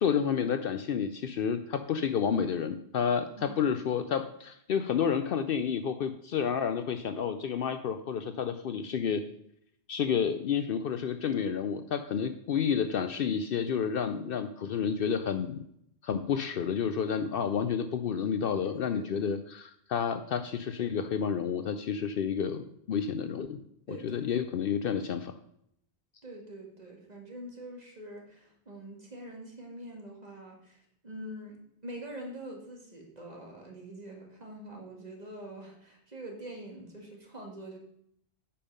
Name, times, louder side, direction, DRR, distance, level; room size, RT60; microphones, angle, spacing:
voice 1, 0.0-9.2 9.9-15.6 16.0-23.6 23.9-25.3, left 7 dB, 65° left, 9 dB, 0.7 m, -30 dB
voice 2, 3.3-3.7 18.6-19.4 23.9-24.5 26.2-30.8 31.0-37.8, right 1 dB, 40° right, 0 dB, 2.0 m, -45 dB
8.6 x 5.5 x 5.4 m, 0.72 s
omnidirectional pair, 1.1 m